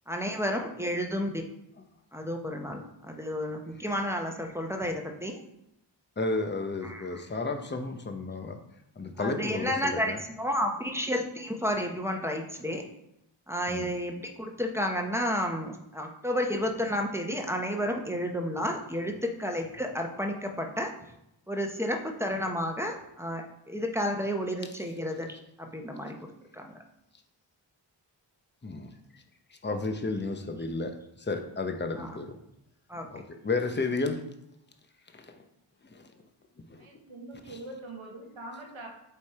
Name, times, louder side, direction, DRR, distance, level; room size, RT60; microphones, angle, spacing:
voice 1, 0.1-1.4 2.1-5.4 6.8-7.2 9.2-12.8 13.5-19.1 19.4-20.9 21.5-26.1 26.5-26.8 32.0-32.2 32.9-33.1, equal, 5° right, 2 dB, 1.1 m, -31 dB
voice 2, 6.2-8.6 9.0-10.2 13.7-13.9 28.6-29.2 29.5-32.3 33.1-34.2 35.1-35.4 35.9-36.1 36.7-36.9 37.5-37.6, left 3 dB, 25° left, 5 dB, 0.9 m, -33 dB
voice 3, 36.8-38.9, right 2 dB, 85° right, 1 dB, 1.3 m, -43 dB
8.3 x 3.3 x 4.4 m, 0.81 s
cardioid pair, 40°, 47 cm